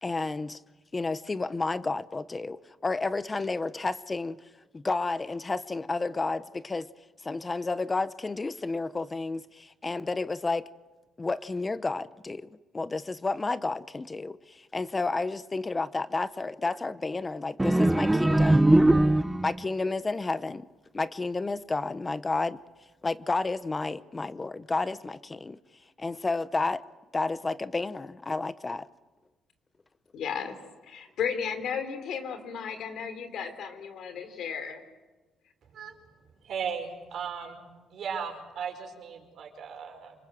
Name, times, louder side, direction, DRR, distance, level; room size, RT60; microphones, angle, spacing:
voice 1, 0.0-0.6 0.9-4.4 4.7-6.9 7.2-10.7 11.2-18.6 19.4-20.7 20.9-22.6 23.0-25.6 26.0-26.8 27.1-28.9, left 3 dB, 25° left, 0.7 m, -31 dB
sound 1, 17.6-19.6, right 1 dB, 10° right, 0.8 m, -21 dB
voice 2, 30.1-30.5 30.9-34.8, left 7 dB, 75° left, 3.4 m, -34 dB
voice 3, 36.4-40.1, right 6 dB, 65° right, 5.2 m, -37 dB
28.5 x 20.5 x 7.8 m
cardioid pair, 90°, 0 cm